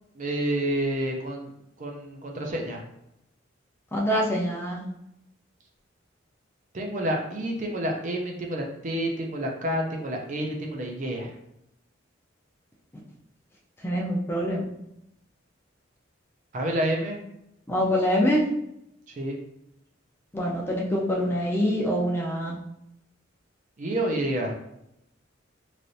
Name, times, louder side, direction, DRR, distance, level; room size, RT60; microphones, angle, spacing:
voice 1, 0.1-1.5 1.8-2.8 6.7-11.3 16.5-17.2 19.2-19.4 23.8-24.6, right 1 dB, 40° right, 1 dB, 0.5 m, -29 dB
voice 2, 3.9-4.8 13.8-14.6 17.7-18.5 20.3-22.6, equal, 10° left, -2 dB, 0.5 m, -25 dB
3.2 x 2.5 x 2.6 m, 0.81 s
head